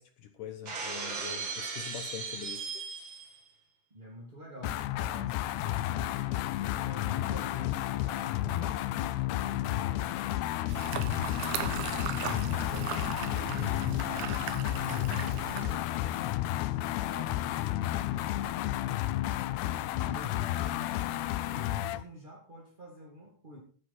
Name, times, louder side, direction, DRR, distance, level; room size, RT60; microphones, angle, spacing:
voice 1, 0.0-2.8, left 8 dB, 75° left, 8 dB, 2.0 m, -44 dB
Shatter, 0.6-3.4, right 4 dB, 45° right, 1.7 m, -37 dB
voice 2, 3.9-6.2 6.7-14.4 14.8-19.3 19.9-23.6, left 1 dB, 25° right, -2 dB, 1.1 m, -46 dB
sound 1, 4.6-22.0, left 14 dB, 90° left, 2.7 m, -32 dB
sound 2, 10.7-15.8, right 9 dB, 75° right, 2.9 m, -38 dB
13.5 x 9.6 x 4.1 m, 0.43 s
omnidirectional pair, 4.6 m